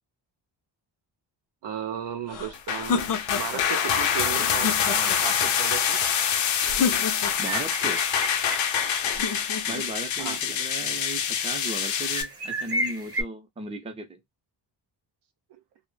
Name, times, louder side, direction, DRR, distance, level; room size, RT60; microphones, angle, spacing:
voice 1, 1.6-6.0 10.2-10.4 15.5-15.6, right 9 dB, 65° right, 0.6 m, -35 dB
sound 1, 2.3-3.7 4.3-5.4 6.6-7.6 9.0-9.9, left 6 dB, 45° left, 0.6 m, -30 dB
sound 2, 2.5-12.2, left 8 dB, 90° left, 0.6 m, -26 dB
voice 2, 7.4-8.0 9.7-14.2, right 2 dB, 15° right, 0.6 m, -36 dB
sound 3, 7.4-9.3 9.7-9.8 10.3-11.1 11.7-13.2, right 1 dB, 30° right, 0.9 m, -33 dB
2.1 x 2.0 x 3.0 m
cardioid pair, 85°, 44 cm